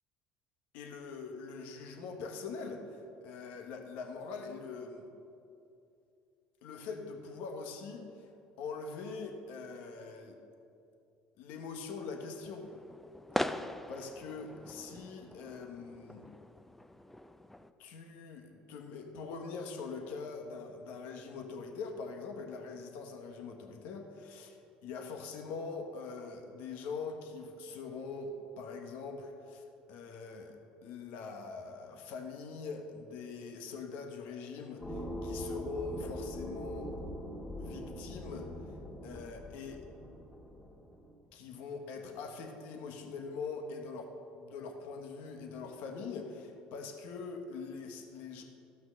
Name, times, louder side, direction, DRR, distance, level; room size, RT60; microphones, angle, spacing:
voice 1, 0.7-5.1 6.6-8.3 8.6-10.4 11.4-12.6 13.3-13.6 13.9-16.3 17.8-36.9 37.6-38.8 39.0-39.8 41.3-48.4, left 4 dB, 75° left, 4 dB, 1.3 m, -43 dB
sound 1, 12.6-17.7, left 1 dB, 5° left, 0.5 m, -41 dB
sound 2, 34.8-41.1, equal, 25° left, 2.2 m, -42 dB
14.0 x 6.0 x 6.5 m, 2.6 s
supercardioid pair, 90°, 3 cm